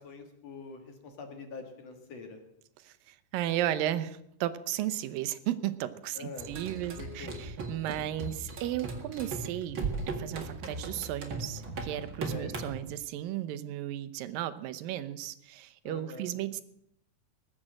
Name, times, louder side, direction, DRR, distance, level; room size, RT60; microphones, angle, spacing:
voice 1, 0.0-2.4 6.2-6.5 7.0-7.3 12.3-12.6 15.8-16.3, left 4 dB, 55° left, 5 dB, 2.6 m, -44 dB
voice 2, 2.8-16.6, right 12 dB, 90° right, 13 dB, 2.5 m, -35 dB
sound 1, 6.4-12.8, right 3 dB, 40° right, 2.2 m, -38 dB
20.0 x 7.5 x 7.7 m, 0.77 s
omnidirectional pair, 3.9 m